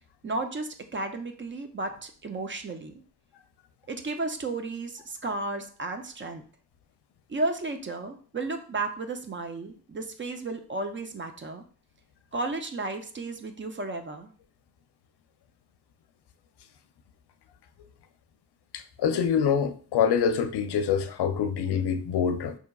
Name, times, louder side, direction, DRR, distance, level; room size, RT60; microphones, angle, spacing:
voice 1, 0.2-3.0 3.9-6.4 7.3-11.6 12.3-14.3, right 2 dB, 30° right, 0.4 m, -33 dB
voice 2, 18.7-22.6, left 7 dB, 80° left, 0.5 m, -25 dB
5.6 x 2.8 x 2.3 m
wide cardioid pair, 155°, 39 cm